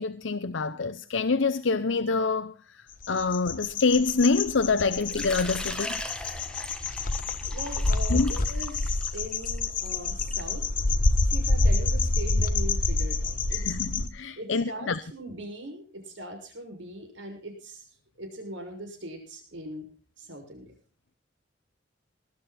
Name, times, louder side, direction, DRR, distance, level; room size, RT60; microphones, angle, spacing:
voice 1, 0.0-6.0 8.1-8.3 13.5-15.0, left 4 dB, 80° left, 0.7 m, -26 dB
sound 1, 3.0-14.1, left 2 dB, 45° left, 1.2 m, -27 dB
Water / Liquid, 5.0-10.5, left 1 dB, 5° left, 1.8 m, -39 dB
voice 2, 7.4-10.6 11.1-13.6 14.4-17.8 18.2-19.9 20.2-20.7, right 1 dB, 80° right, 6.2 m, -40 dB
19.5 x 12.0 x 4.3 m
head